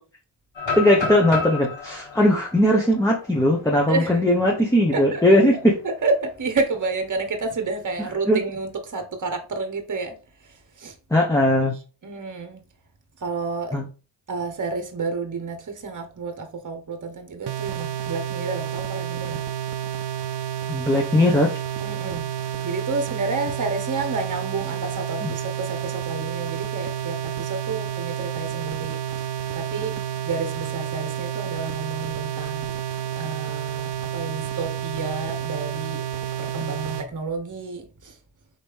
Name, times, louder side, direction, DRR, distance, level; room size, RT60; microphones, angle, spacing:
sound 1, 0.6-4.5 4.9-5.0 5.5-5.8 7.1-8.0, left 4 dB, 80° left, 1.3 m, -32 dB
voice 1, 0.7-5.7 8.3-8.4 11.1-11.8 13.7-13.9 20.7-21.5 25.2-25.3, left 1 dB, 5° left, 0.9 m, -19 dB
voice 2, 3.9-4.2 4.9-5.4 5.8-10.2 10.4-11.0 12.0-12.6 13.2-13.8 14.3-19.4 21.8-22.2 22.6-29.3 29.5-30.0 30.2-32.7 33.1-36.0 36.4-38.2, right 3 dB, 40° right, 1.0 m, -30 dB
sound 2, 17.5-37.1, right 10 dB, 60° right, 0.5 m, -30 dB
4.2 x 3.1 x 3.5 m
cardioid pair, 55°, 45 cm